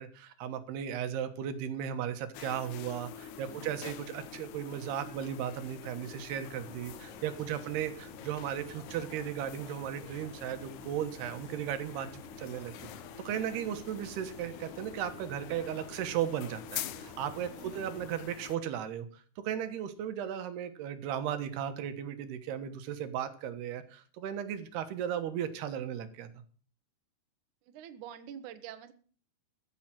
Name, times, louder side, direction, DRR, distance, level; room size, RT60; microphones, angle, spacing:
voice 1, 0.0-12.7 13.3-26.3, right 9 dB, 85° right, 9 dB, 3.3 m, -36 dB
sound 1, 2.3-18.6, left 10 dB, 80° left, 1.7 m, -46 dB
voice 2, 3.4-3.8 7.5-7.6 17.6-18.0 27.7-28.9, right 9 dB, 65° right, 10 dB, 2.2 m, -47 dB
sound 2, 6.5-18.2, right 2 dB, ahead, 2.7 m, -54 dB
15.0 x 7.6 x 7.5 m, 0.43 s
omnidirectional pair, 4.5 m